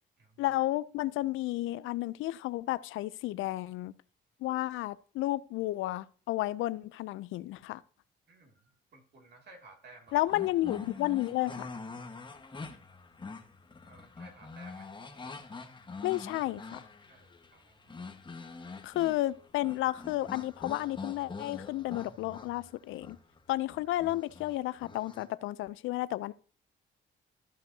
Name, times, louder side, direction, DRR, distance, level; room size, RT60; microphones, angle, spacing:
voice 1, 0.4-3.9 4.4-7.8 10.1-11.7 16.0-16.8 18.8-23.2 23.5-26.3, left 16 dB, 85° left, 0.4 m, -32 dB
voice 2, 8.3-10.3 13.8-15.7 17.0-18.1, right 3 dB, 55° right, 2.4 m, -57 dB
sound 1, 10.1-25.2, left 4 dB, 25° left, 1.3 m, -45 dB
13.5 x 5.3 x 2.7 m
cardioid pair, 90°, 20 cm